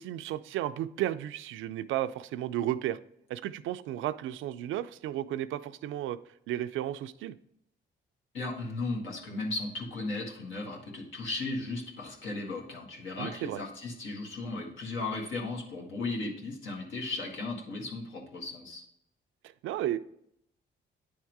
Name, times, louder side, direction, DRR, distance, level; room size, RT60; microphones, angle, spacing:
voice 1, 0.0-3.0 3.3-6.2 6.5-7.4 13.2-13.6 19.6-20.0, right 12 dB, 80° right, 13 dB, 0.4 m, -33 dB
voice 2, 8.3-18.8, left 2 dB, 80° left, -1 dB, 1.7 m, -36 dB
9.3 x 3.7 x 4.6 m, 0.73 s
cardioid pair, 90°, 20 cm